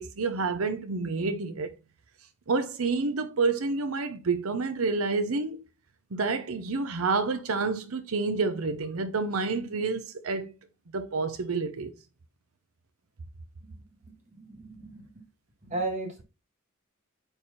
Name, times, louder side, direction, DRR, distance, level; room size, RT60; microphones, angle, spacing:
voice 1, 0.0-1.7 2.5-5.6 6.1-10.5 10.9-11.9, right 4 dB, 85° right, 0.8 m, -29 dB
voice 2, 14.3-15.1 15.7-16.2, right 2 dB, 35° right, 1.9 m, -34 dB
8.9 x 3.5 x 4.2 m
head